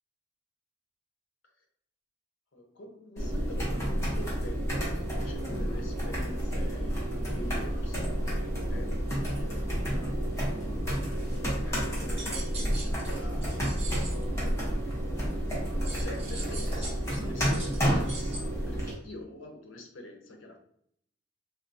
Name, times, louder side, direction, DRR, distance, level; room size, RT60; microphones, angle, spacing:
voice 1, 2.5-14.7 15.1-20.6, left 1 dB, 85° left, 4 dB, 0.6 m, -46 dB
sound 1, 3.2-18.9, equal, 15° left, 0.8 m, -30 dB
sound 2, 11.9-14.2 15.8-18.4, right 3 dB, 35° right, 1.1 m, -42 dB
3.5 x 2.2 x 2.6 m, 0.70 s
head